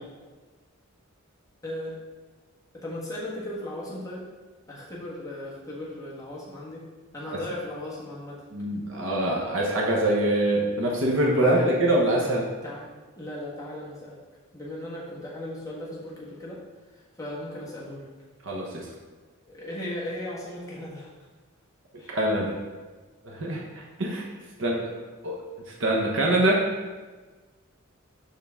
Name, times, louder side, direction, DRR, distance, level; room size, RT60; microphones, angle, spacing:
voice 1, 1.6-1.9 2.7-4.3 4.7-6.8 7.1-8.4 11.4-11.7 12.2-12.4 12.6-12.9 13.2-14.2 14.5-16.6 16.9-18.0 19.4-21.3 22.0-22.2, left 1 dB, 15° left, -6 dB, 1.4 m, -37 dB
voice 2, 8.5-12.4 18.4-18.9 22.1-22.6 23.2-24.2 24.6-24.9 25.2-25.4 25.8-26.7, right 1 dB, 65° right, -2 dB, 1.0 m, -24 dB
11.0 x 3.8 x 3.6 m, 1.3 s
head